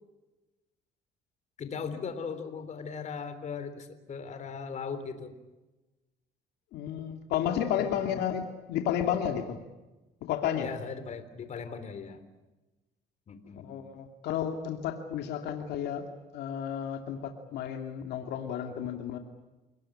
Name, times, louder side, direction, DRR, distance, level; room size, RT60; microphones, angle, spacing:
voice 1, 1.6-5.3 7.8-8.2 10.6-12.2 13.3-13.7, left 5 dB, 45° left, 10 dB, 3.6 m, -38 dB
voice 2, 6.7-9.6 10.2-10.7 13.6-16.1 16.3-19.2, left 9 dB, 80° left, 5 dB, 2.6 m, -32 dB
28.5 x 19.5 x 8.8 m, 1.1 s
cardioid pair, 110°, 17 cm